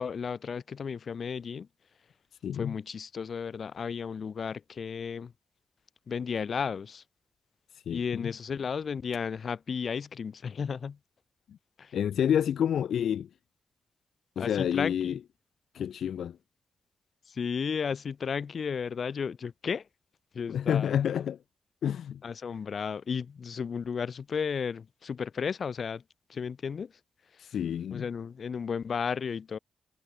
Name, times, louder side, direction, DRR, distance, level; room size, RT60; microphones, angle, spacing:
voice 1, 0.0-1.7 2.5-5.3 6.1-7.0 7.9-11.0 11.8-12.0 14.4-15.2 17.3-19.9 20.3-21.3 22.2-26.0 26.3-26.9 27.9-29.6, left 6 dB, 60° left, 1.1 m, -34 dB
voice 2, 2.4-2.7 7.7-8.3 11.5-11.6 11.9-13.3 14.4-15.2 15.7-16.4 20.5-21.4 21.8-22.2 27.4-28.1, left 9 dB, 80° left, 0.5 m, -29 dB
supercardioid pair, 55°, 0 cm